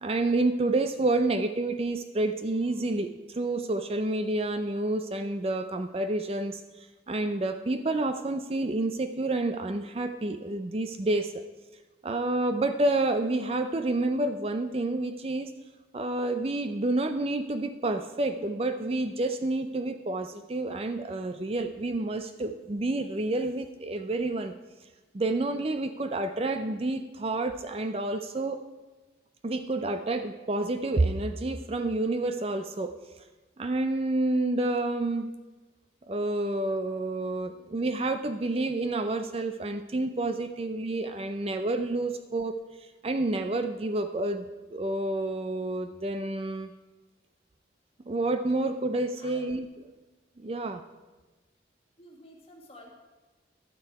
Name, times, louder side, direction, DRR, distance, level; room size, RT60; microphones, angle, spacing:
voice 1, 0.0-11.4 12.0-15.5 15.9-24.5 25.1-28.6 29.4-32.9 33.6-35.3 36.1-42.5 42.8-46.7 48.0-49.7 50.4-50.8, right 2 dB, 30° right, 8 dB, 0.4 m, -29 dB
voice 2, 52.0-52.9, left 1 dB, 35° left, 0 dB, 1.8 m, -50 dB
11.5 x 9.4 x 4.7 m, 1.2 s
head